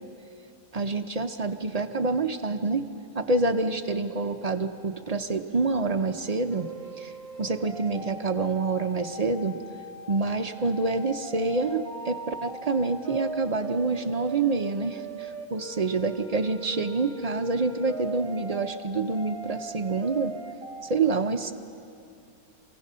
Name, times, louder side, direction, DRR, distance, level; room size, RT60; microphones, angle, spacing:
voice 1, 0.7-2.8 3.1-6.7 7.0-7.1 7.4-9.6 10.1-20.3 20.8-21.5, right 3 dB, 45° right, 6 dB, 0.5 m, -27 dB
sound 1, 6.5-20.9, right 2 dB, 25° right, 1.7 m, -40 dB
28.0 x 17.0 x 5.5 m, 2.6 s
omnidirectional pair, 1.5 m